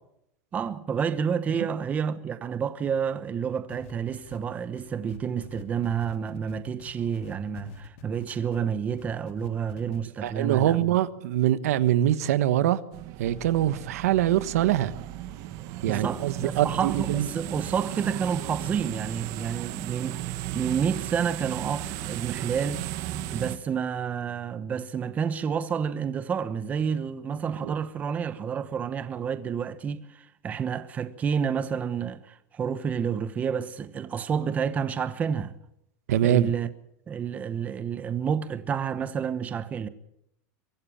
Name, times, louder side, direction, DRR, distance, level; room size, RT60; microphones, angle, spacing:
voice 1, 0.5-10.8 15.9-20.2 20.5-22.8 23.3-35.5 36.2-36.7 37.1-39.9, right 7 dB, 20° right, 1.0 m, -29 dB
sound 1, 3.7-8.6 9.0-10.0 10.3-10.4, left 7 dB, 60° left, 2.8 m, -47 dB
voice 2, 10.2-12.8 13.2-14.9 15.8-17.3 27.6-27.7 36.1-36.5, right 12 dB, 85° right, 1.3 m, -24 dB
sound 2, 12.9-23.6, right 14 dB, 45° right, 1.4 m, -35 dB
23.5 x 14.5 x 8.6 m
supercardioid pair, 160°, 8 cm